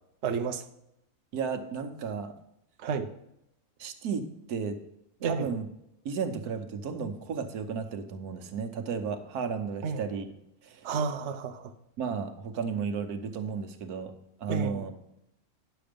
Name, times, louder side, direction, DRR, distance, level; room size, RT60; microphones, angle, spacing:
voice 1, 0.2-0.6 2.8-3.1 5.2-5.5 9.8-10.0 10.8-11.7 14.5-14.8, right 6 dB, 55° right, 5 dB, 1.0 m, -31 dB
voice 2, 1.3-2.3 3.8-4.8 5.2-5.7 6.0-10.2 10.6-10.9 12.0-14.9, right 6 dB, 80° right, 7 dB, 1.5 m, -34 dB
10.5 x 6.9 x 5.1 m, 0.83 s
omnidirectional pair, 1.6 m